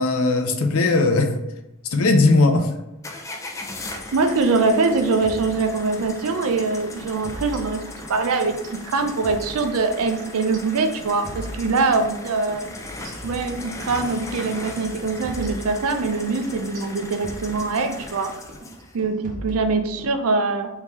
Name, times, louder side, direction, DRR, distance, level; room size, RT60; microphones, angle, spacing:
voice 1, 0.0-1.3 1.8-2.7, left 3 dB, 75° left, 6 dB, 0.5 m, -18 dB
sound 1, 3.0-19.0, left 2 dB, 15° left, 0.4 m, -38 dB
voice 2, 4.1-7.8 8.1-12.7 13.2-18.3 18.9-20.7, right 3 dB, 90° right, 7 dB, 0.5 m, -23 dB
sound 2, 4.4-6.2 6.5-6.7 7.0-8.2 8.5-12.2 12.5-12.7 13.0-14.2 14.5-14.7 15.0-18.2 18.5-18.7 19.0-20.2, right 1 dB, 40° right, 0.7 m, -39 dB
3.7 x 2.7 x 3.0 m, 0.94 s
head